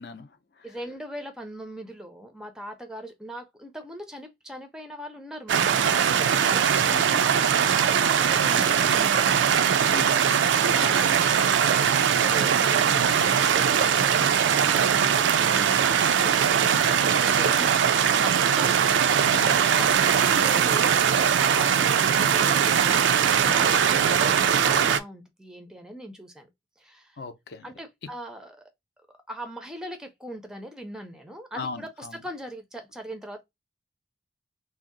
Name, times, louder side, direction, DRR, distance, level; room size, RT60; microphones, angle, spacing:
voice 1, 0.0-0.7 6.9-7.2 9.9-10.4 10.8-11.2 19.3-19.7 27.2-27.7 31.5-32.2, left 4 dB, 55° left, 0.5 m, -39 dB
voice 2, 0.6-9.3 10.5-19.2 19.8-26.5 26.8-27.2 27.6-28.6 29.3-33.4, equal, 5° right, 0.4 m, -40 dB
sound 1, 5.5-25.0, right 8 dB, 70° right, 0.3 m, -21 dB
2.7 x 2.0 x 3.7 m
head